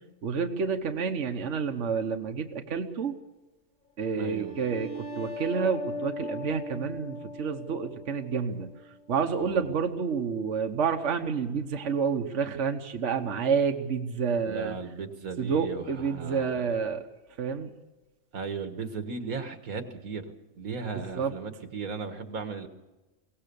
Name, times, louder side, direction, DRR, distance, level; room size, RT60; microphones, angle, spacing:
voice 1, 0.2-3.1 4.0-8.7 9.1-14.8 15.4-17.0 17.4-17.7 21.1-21.3, right 6 dB, 60° right, 4 dB, 1.4 m, -29 dB
sound 1, 4.0-9.3, left 2 dB, 40° left, 4.5 m, -40 dB
voice 2, 4.2-4.5 9.4-9.7 14.5-16.7 18.3-22.7, right 4 dB, 80° right, 8 dB, 2.0 m, -36 dB
23.0 x 18.0 x 6.9 m, 1.1 s
omnidirectional pair, 1.5 m